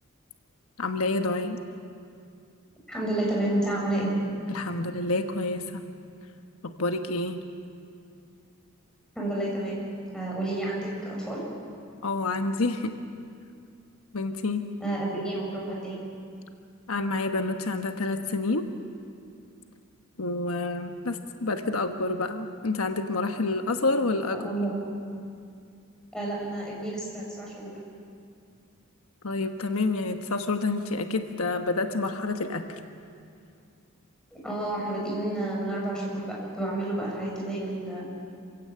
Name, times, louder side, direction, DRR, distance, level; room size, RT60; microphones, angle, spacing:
voice 1, 0.8-1.6 4.5-5.8 6.8-7.4 12.0-12.9 14.1-14.6 16.9-18.6 20.2-24.4 29.2-32.6, left 3 dB, 85° left, 6 dB, 1.2 m, -28 dB
voice 2, 2.9-4.1 9.2-9.8 10.1-11.4 14.8-16.0 24.3-24.8 26.1-27.7 34.3-38.0, right 1 dB, 5° left, -4 dB, 6.9 m, -30 dB
27.0 x 16.5 x 8.7 m, 2.4 s
head